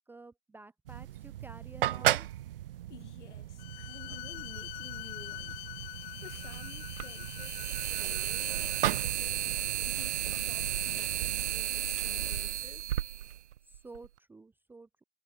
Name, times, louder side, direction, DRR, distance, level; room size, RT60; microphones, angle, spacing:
voice 1, 0.0-2.3 13.7-14.9, right 3 dB, 5° right, 1.1 m, -51 dB
sound 1, 0.9-11.6, right 13 dB, 45° right, 0.9 m, -37 dB
voice 2, 2.9-9.5 9.8-13.0, left 9 dB, 60° left, 3.9 m, -53 dB
Bowed string instrument, 3.6-9.1, left 27 dB, 35° left, 2.2 m, -45 dB
sound 2, 4.7-4.8 6.1-14.1, right 11 dB, 60° right, 0.5 m, -34 dB
figure-of-eight pair, 120°, 41 cm